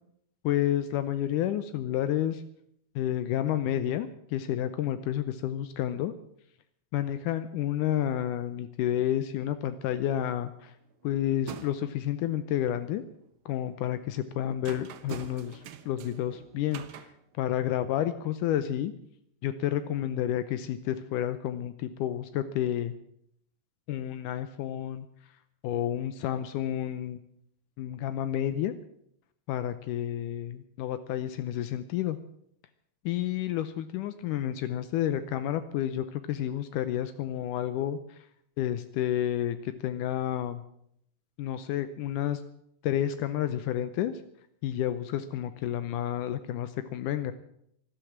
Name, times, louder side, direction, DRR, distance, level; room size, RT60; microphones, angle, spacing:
voice 1, 0.4-2.4 3.0-6.1 6.9-10.7 11.0-13.0 13.5-17.1 17.4-18.9 19.4-22.9 23.9-25.1 25.6-27.2 27.8-28.7 29.5-32.2 33.1-38.2 38.6-40.6 41.4-42.4 42.8-44.1 44.6-47.3, left 11 dB, 80° left, 11 dB, 2.3 m, -30 dB
sound 1, 9.4-9.6 9.9-10.5 10.8-12.0 12.6-13.3 13.7-17.8, right 8 dB, 70° right, 1.3 m, -46 dB
13.0 x 12.5 x 8.7 m, 0.72 s
omnidirectional pair, 3.7 m